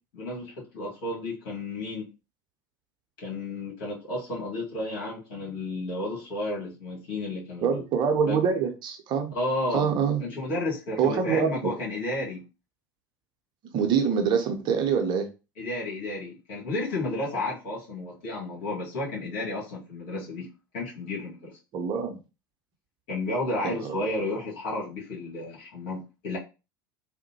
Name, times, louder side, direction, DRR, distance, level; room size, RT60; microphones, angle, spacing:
voice 1, 0.1-2.1 3.2-7.8 8.2-8.4 9.3-9.9 10.2-12.4 15.6-20.5 20.7-21.6 23.1-26.4, left 2 dB, 60° left, 1.8 m, -32 dB
voice 2, 7.6-9.3 9.7-10.2 11.0-11.7 13.7-15.3 21.7-22.2 23.6-24.0, right 6 dB, 45° right, 0.7 m, -25 dB
3.6 x 2.1 x 2.8 m
figure-of-eight pair, 75°, 11 cm